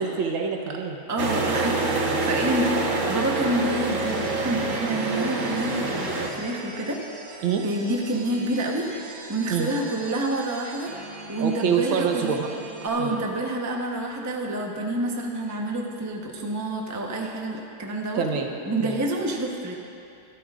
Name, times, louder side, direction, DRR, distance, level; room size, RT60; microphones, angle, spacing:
voice 1, 0.0-1.0 7.4-7.6 9.5-9.7 11.4-12.5 13.0-13.2 18.1-18.5 18.8-19.0, right 6 dB, 85° right, 3 dB, 1.7 m, -26 dB
voice 2, 1.1-2.7 3.1-7.0 7.5-8.9 9.3-12.4 12.8-19.7, right 1 dB, 15° right, 0 dB, 0.5 m, -28 dB
sound 1, 1.2-6.3, right 3 dB, 45° right, 1.3 m, -26 dB
sound 2, 3.7-12.9, right 3 dB, 70° right, 2.1 m, -42 dB
23.5 x 12.0 x 2.5 m, 2.6 s
omnidirectional pair, 2.1 m